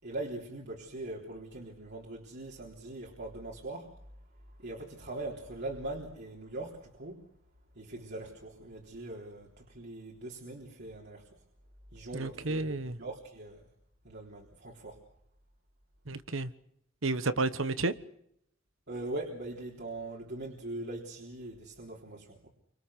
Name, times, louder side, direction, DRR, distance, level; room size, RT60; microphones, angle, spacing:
voice 1, 0.0-3.9 4.6-7.2 7.8-11.2 11.9-13.7 14.0-15.0 18.9-22.5, right 2 dB, 55° right, -2 dB, 3.7 m, -41 dB
voice 2, 12.1-13.0 16.1-16.5 17.0-17.9, right 3 dB, 75° right, 13 dB, 1.4 m, -31 dB
28.0 x 25.0 x 6.5 m, 0.73 s
head